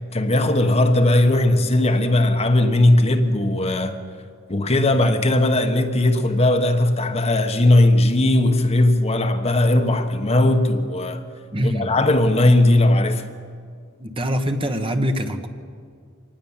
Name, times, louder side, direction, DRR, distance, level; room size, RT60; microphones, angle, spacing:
voice 1, 0.1-4.0 4.5-11.2 11.6-13.3, left 1 dB, 30° left, 1.2 m, -18 dB
voice 2, 11.5-11.9 14.0-15.5, equal, 25° right, 1.3 m, -24 dB
24.5 x 19.5 x 7.3 m
head